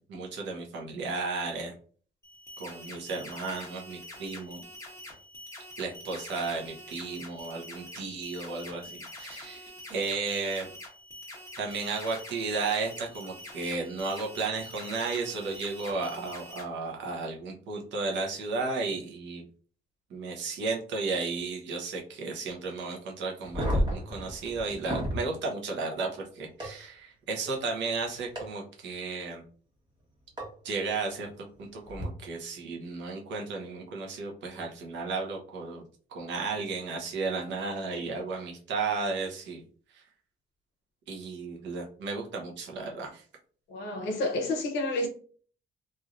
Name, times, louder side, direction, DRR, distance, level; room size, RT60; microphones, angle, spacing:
voice 1, 0.1-1.7 2.6-4.6 5.8-10.7 11.6-19.4 20.1-29.4 30.6-35.8 36.1-39.6 39.9-40.0 41.1-43.2, right 4 dB, 85° right, 0.9 m, -34 dB
sound 1, 2.2-16.6, left 1 dB, 15° left, 1.1 m, -45 dB
sound 2, 23.4-25.2 26.6-26.7 28.4-28.5 30.4-30.5 31.9-32.0, equal, 25° right, 1.3 m, -30 dB
voice 2, 43.7-45.1, left 2 dB, 85° left, 0.7 m, -29 dB
3.2 x 2.6 x 2.5 m
cardioid pair, 110°, 18 cm